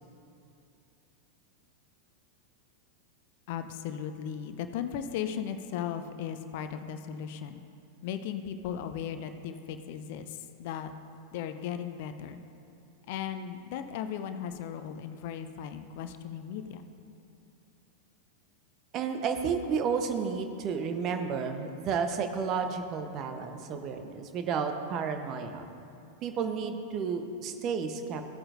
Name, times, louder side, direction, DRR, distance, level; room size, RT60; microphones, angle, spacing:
voice 1, 3.5-7.6 8.0-10.9 11.3-12.4 13.1-16.8, left 8 dB, 50° left, 9 dB, 0.5 m, -37 dB
voice 2, 18.9-25.7 26.2-28.2, right 6 dB, 35° right, 6 dB, 0.9 m, -32 dB
16.5 x 8.6 x 2.6 m, 2.6 s
figure-of-eight pair, 90°, 0 cm